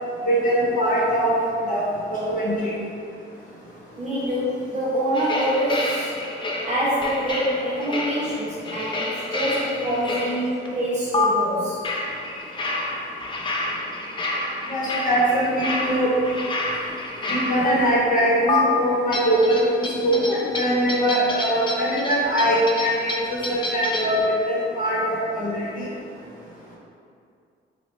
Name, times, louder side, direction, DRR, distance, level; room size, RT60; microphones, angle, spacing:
voice 1, 0.2-1.4 1.7-1.8 2.1-2.5 14.7-16.1 17.3-19.6 20.0-25.9, equal, 40° left, -7 dB, 1.1 m, -22 dB
voice 2, 4.0-6.1 6.6-11.8, equal, 35° right, -7 dB, 1.0 m, -25 dB
sound 1, 5.1-10.7 11.1-11.2 11.8-17.9 18.5-18.6 19.1-24.2, left 2 dB, 25° left, 0.4 m, -29 dB
3.2 x 2.3 x 3.2 m, 2.4 s
cardioid pair, 90°, 20 cm